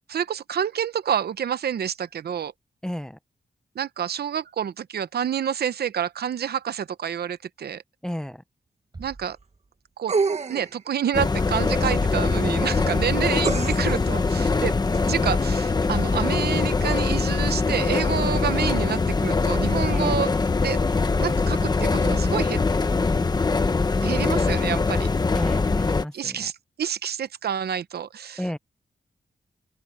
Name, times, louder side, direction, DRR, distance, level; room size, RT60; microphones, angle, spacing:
voice 1, 0.1-2.5 3.8-7.8 9.0-9.4 10.0-10.1 10.5-14.8 15.1-20.8 21.2-22.6 24.0-25.1 26.1-26.5 26.8-28.6, right 8 dB, 80° right, 0.8 m, -28 dB
voice 2, 2.8-3.2 8.0-8.4 19.9-20.2 25.3-26.5 28.4-28.6, equal, 5° left, 0.7 m, -32 dB
sound 1, 8.9-10.6, right 3 dB, 25° right, 3.7 m, -48 dB
sound 2, 10.1-10.8 13.4-14.0 14.9-15.0, right 4 dB, 40° right, 1.4 m, -26 dB
sound 3, 11.1-26.0, left 4 dB, 25° left, 1.0 m, -23 dB
open air
wide cardioid pair, 180°, 16 cm